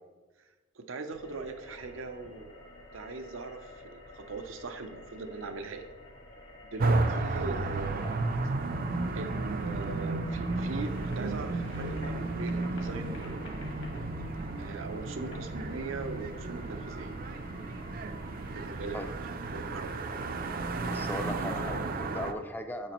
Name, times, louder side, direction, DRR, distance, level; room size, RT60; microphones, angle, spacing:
voice 1, 0.7-2.5 2.9-5.9 6.7-8.1 9.1-13.5 14.6-17.1 18.5-19.0 19.5-20.1, right 3 dB, 85° right, 7 dB, 0.6 m, -40 dB
sound 1, 1.1-19.1, left 1 dB, 65° left, 1.8 m, -50 dB
sound 2, 6.8-22.3, right 3 dB, 45° right, 0.5 m, -33 dB
voice 2, 20.8-22.9, left 1 dB, 10° left, 6 dB, 0.4 m, -38 dB
9.1 x 6.6 x 3.0 m, 1.3 s
head